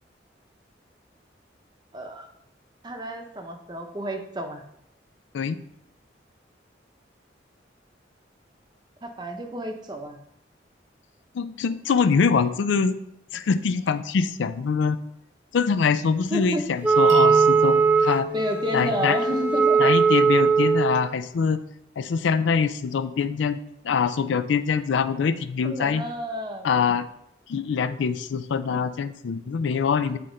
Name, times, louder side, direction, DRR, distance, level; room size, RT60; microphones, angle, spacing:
voice 1, 1.9-2.3 2.8-4.6 9.0-10.2 16.3-16.6 18.3-19.9 25.6-26.7, right 1 dB, 25° right, 4 dB, 0.7 m, -30 dB
voice 2, 11.3-13.0 13.3-15.0 15.5-18.3 18.7-19.2 19.8-21.6 22.0-23.6 23.8-26.0 26.6-27.0 27.5-30.2, left 6 dB, 85° left, 12 dB, 0.4 m, -24 dB
Wind instrument woodwind instrument, 16.8-21.0, right 5 dB, 10° right, 0.3 m, -20 dB
sound 1, 17.1-20.0, equal, 85° right, 1.4 m, -35 dB
8.2 x 4.2 x 3.8 m, 0.77 s
head